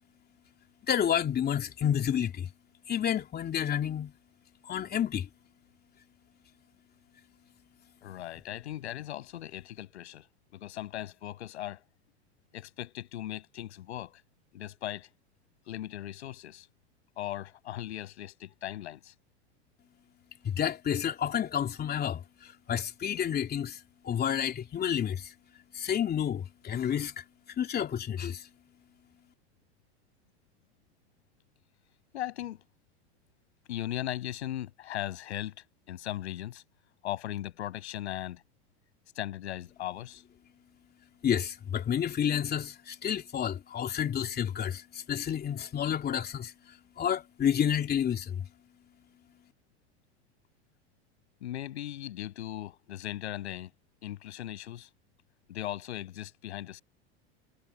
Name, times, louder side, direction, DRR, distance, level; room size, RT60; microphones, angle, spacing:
voice 1, 0.9-2.5 2.9-4.1 4.7-5.3 20.4-23.8 24.0-25.3 25.7-27.2 27.6-28.5 41.2-46.5 47.0-48.4, left 9 dB, 30° left, 3.2 m, -30 dB
voice 2, 8.0-10.3 10.5-11.8 12.5-14.2 14.5-15.1 15.6-16.7 17.2-19.1 32.1-32.6 33.7-35.5 35.9-36.6 37.0-38.4 39.1-40.2 51.4-53.7 54.0-54.9 55.5-56.8, left 13 dB, 90° left, 6.6 m, -38 dB
supercardioid pair, 115°, 33 cm